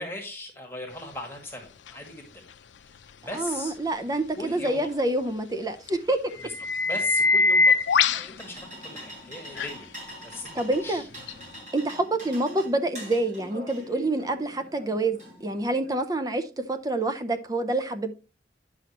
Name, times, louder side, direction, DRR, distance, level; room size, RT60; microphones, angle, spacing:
voice 1, 0.0-2.3 2.8-3.7 4.4-4.9 6.4-6.5 6.8-9.9 10.2-10.5 10.8-11.1, left 2 dB, 15° left, 1.9 m, -38 dB
sound 1, 1.9-2.0 5.9-6.0 6.4-8.3 9.6-9.7 11.3-11.4, left 4 dB, 90° left, 0.5 m, -22 dB
voice 2, 3.3-6.4 10.6-11.0 11.7-18.1, right 2 dB, 20° right, 0.5 m, -27 dB
sound 2, 7.9-15.9, right 1 dB, 45° right, 4.8 m, -44 dB
10.5 x 5.9 x 3.0 m
head